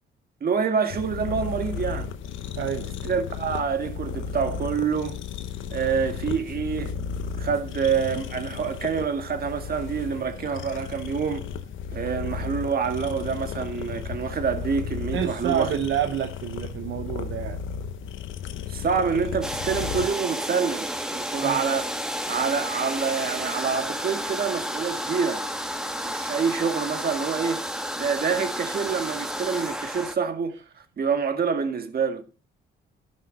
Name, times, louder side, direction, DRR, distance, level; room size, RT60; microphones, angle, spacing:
voice 1, 0.4-2.1 3.0-5.2 5.7-6.9 7.4-11.4 11.9-15.7 18.7-21.9 22.3-25.4 26.0-27.6 28.0-30.5 31.0-32.2, right 6 dB, 50° right, 1.9 m, -27 dB
sound 1, 0.9-20.1, left 6 dB, 80° left, 1.0 m, -34 dB
voice 2, 2.6-2.9 15.1-17.6 21.4-21.6, right 10 dB, 70° right, 0.9 m, -28 dB
sound 2, 19.4-30.2, equal, 5° right, 1.4 m, -31 dB
12.5 x 6.3 x 4.2 m
cardioid pair, 90°, 20 cm